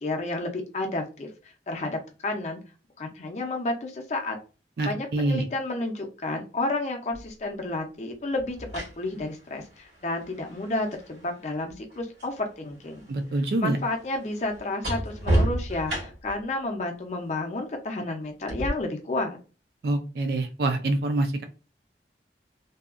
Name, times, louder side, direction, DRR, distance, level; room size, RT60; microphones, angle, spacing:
voice 1, 0.0-1.3 1.7-2.6 3.0-4.4 4.8-8.6 9.0-13.1 13.6-19.4, left 2 dB, 40° left, 2 dB, 0.5 m, -31 dB
voice 2, 4.8-5.4 13.1-13.8 19.8-21.4, right 2 dB, 60° right, 6 dB, 0.3 m, -26 dB
sound 1, 7.1-7.3 8.4-12.4 12.7-16.4 18.5-18.7, right 1 dB, 80° right, 1.3 m, -32 dB
2.7 x 2.3 x 2.4 m, 0.34 s
head